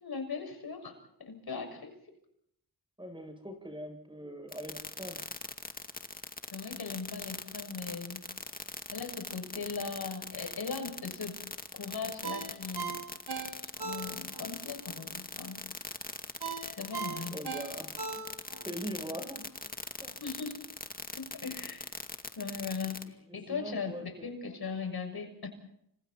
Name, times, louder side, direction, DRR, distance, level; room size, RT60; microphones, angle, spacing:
voice 1, 0.0-2.0 6.5-8.2 8.9-11.4 11.7-13.0 13.4-15.6 16.8-17.4 20.2-20.6 21.1-21.9 22.3-25.5, left 5 dB, 65° left, 5 dB, 6.6 m, -39 dB
voice 2, 3.0-5.2 16.9-17.0 17.3-18.4 18.6-19.4 20.0-20.2 23.0-24.3, equal, 10° right, 4 dB, 7.8 m, -42 dB
sound 1, 4.5-23.0, left 2 dB, 20° left, 2.3 m, -41 dB
Ringtone, 12.2-14.5 14.9-15.0 16.4-18.7 19.0-19.1, right 5 dB, 80° right, 5.5 m, -38 dB
30.0 x 27.0 x 4.3 m, 0.74 s
cardioid pair, 70°, 40 cm